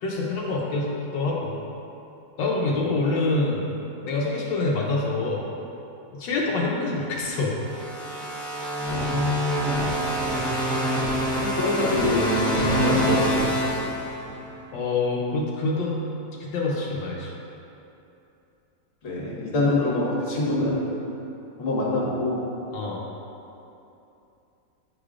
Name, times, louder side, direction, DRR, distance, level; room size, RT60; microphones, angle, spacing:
voice 1, 0.0-1.6 2.4-3.7 4.0-5.4 6.2-7.6 14.7-16.0 16.4-17.3 22.7-23.0, left 3 dB, 85° left, -3 dB, 1.5 m, -26 dB
sound 1, 7.6-14.5, equal, 5° left, 0.7 m, -25 dB
voice 2, 11.4-12.3 12.8-13.6 19.0-20.8 21.6-22.4, left 2 dB, 50° left, -6 dB, 1.6 m, -25 dB
9.1 x 4.9 x 2.4 m, 2.8 s
omnidirectional pair, 1.9 m